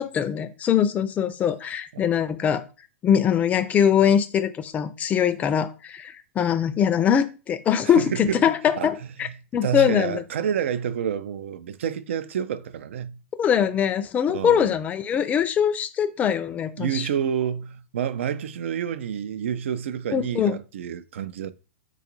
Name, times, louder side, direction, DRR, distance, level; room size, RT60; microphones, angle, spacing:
voice 1, 0.0-2.6 3.0-10.2 13.4-17.1 20.1-20.6, left 8 dB, 20° left, 0.4 m, -22 dB
voice 2, 7.8-8.4 8.8-8.9 9.2-9.3 9.6-13.2 14.3-14.7 16.8-21.5, right 8 dB, 70° right, 0.4 m, -29 dB
3.9 x 2.3 x 2.9 m
hypercardioid pair, 115°, 7 cm